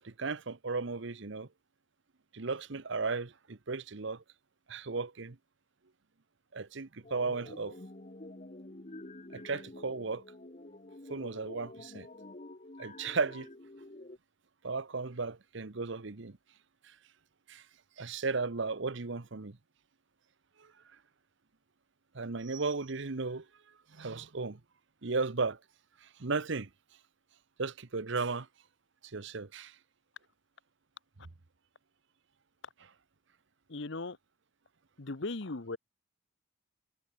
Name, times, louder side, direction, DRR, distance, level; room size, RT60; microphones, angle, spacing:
voice 1, 0.0-1.5 2.3-4.2 4.7-5.4 6.5-7.8 9.3-10.2 11.1-12.1 12.8-13.5 14.6-16.4 16.8-16.9 17.5-17.6 18.0-19.6 20.6-20.7 22.1-23.5 23.9-24.6 25.0-25.6 26.0-26.7 27.6-28.5 29.0-29.8, right 4 dB, 65° right, 1.0 m, -35 dB
sound 1, 7.0-14.2, left 2 dB, 35° left, 1.6 m, -49 dB
voice 2, 33.7-34.2 35.0-35.8, left 2 dB, 60° left, 1.1 m, -37 dB
head